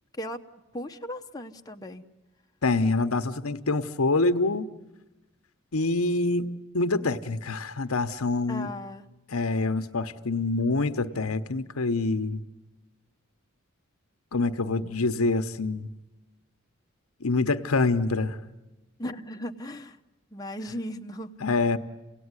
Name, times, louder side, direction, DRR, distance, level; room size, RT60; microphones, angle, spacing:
voice 1, 0.7-2.0 7.0-7.2 8.5-9.1 19.0-20.0 20.3-21.4, left 1 dB, 20° left, 4 dB, 0.8 m, -37 dB
voice 2, 2.6-4.7 5.7-8.7 9.3-12.4 14.3-15.9 17.2-18.4 21.4-21.8, left 3 dB, 90° left, 9 dB, 1.0 m, -26 dB
28.0 x 18.0 x 9.7 m, 1.1 s
head